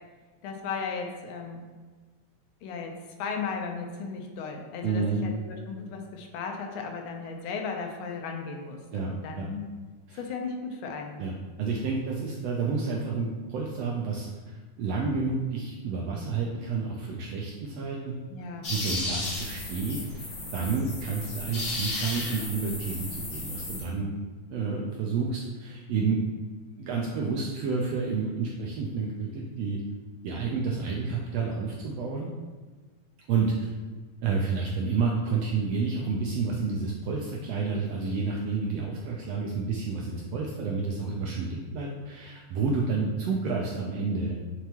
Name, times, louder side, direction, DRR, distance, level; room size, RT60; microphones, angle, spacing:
voice 1, 0.4-1.6 2.6-2.9 3.2-9.7 10.2-11.2 18.3-18.7, left 5 dB, 85° left, 2 dB, 2.2 m, -36 dB
voice 2, 4.8-5.3 8.9-9.1 9.4-9.5 10.1-10.2 11.2-18.1 18.7-20.3 20.5-24.1 24.5-26.2 26.8-29.8 30.2-32.3 33.3-33.7 34.2-44.4, right 4 dB, 80° right, -2 dB, 1.5 m, -30 dB
sound 1, 18.6-23.8, left 2 dB, 40° left, 2.2 m, -34 dB
8.3 x 4.6 x 3.0 m, 1.3 s
omnidirectional pair, 3.5 m